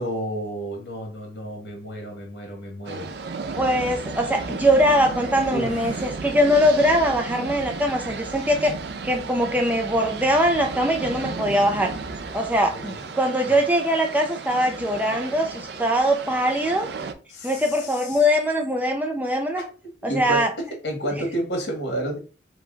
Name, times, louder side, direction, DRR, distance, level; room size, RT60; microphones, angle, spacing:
voice 1, 0.0-3.1 5.5-6.1 12.7-13.1 17.3-18.2 19.6-19.7 20.0-20.5 20.8-22.2, right 1 dB, 65° left, 1 dB, 1.5 m, -31 dB
sound 1, 2.8-17.1, right 4 dB, 60° right, 0.4 m, -34 dB
voice 2, 3.6-8.7 9.0-11.9 12.3-16.9 17.4-19.6 20.0-20.5, equal, 10° right, 2 dB, 0.4 m, -22 dB
4.7 x 2.3 x 3.8 m, 0.36 s
head